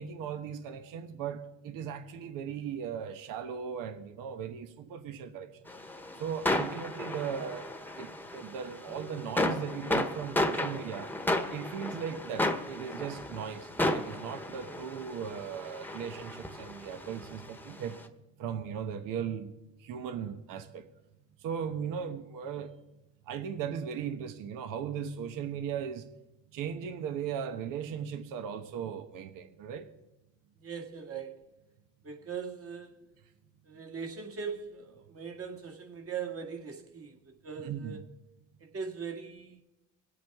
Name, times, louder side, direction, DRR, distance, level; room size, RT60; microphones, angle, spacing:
voice 1, 0.0-5.5 6.2-11.1 11.5-18.0 18.4-19.5 19.8-20.9 21.4-22.7 23.3-26.0 26.5-29.9 37.6-38.0, right 7 dB, 75° right, 8 dB, 1.2 m, -37 dB
sound 1, 5.7-18.0, left 1 dB, 5° left, 1.2 m, -34 dB
voice 2, 30.6-31.4 32.0-33.0 33.6-38.0 38.6-39.6, right 6 dB, 45° right, 3 dB, 2.1 m, -40 dB
24.0 x 8.5 x 3.6 m, 0.96 s
cardioid pair, 100°, 33 cm